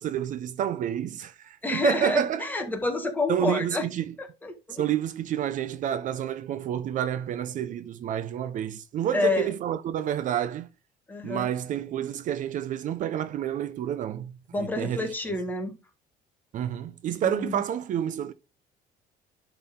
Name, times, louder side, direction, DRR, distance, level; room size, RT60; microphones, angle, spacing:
voice 1, 0.0-2.5 3.3-4.1 4.7-10.7 11.2-14.3 14.6-15.1 16.5-18.3, right 10 dB, 50° right, 0.6 m, -29 dB
voice 2, 1.6-3.9 4.2-4.8 9.1-9.5 11.1-11.5 14.5-15.7 17.2-17.6, left 3 dB, 10° left, 1.6 m, -29 dB
11.0 x 3.9 x 3.6 m
cardioid pair, 150°, 17 cm